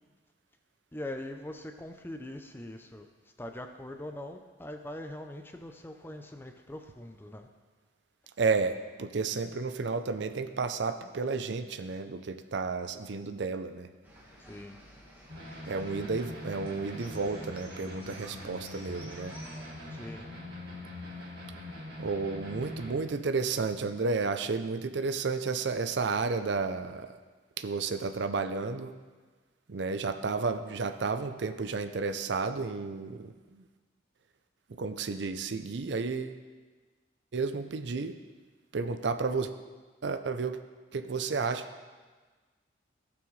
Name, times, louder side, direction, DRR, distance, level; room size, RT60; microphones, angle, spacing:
voice 1, 0.9-3.1 3.4-7.5 14.4-14.8 19.9-20.3, left 1 dB, 10° left, 5 dB, 0.5 m, -42 dB
voice 2, 8.4-13.9 15.7-19.3 22.0-27.2 27.6-28.9 29.7-33.6 34.8-36.4 37.3-38.2 38.7-39.5 40.0-40.6 40.9-41.6, right 4 dB, 65° right, 9 dB, 0.5 m, -32 dB
sound 1, 14.0-20.1, equal, 10° right, 1.5 m, -53 dB
sound 2, 15.3-23.0, left 1 dB, 50° right, 2.5 m, -43 dB
17.5 x 6.1 x 3.2 m, 1.4 s
head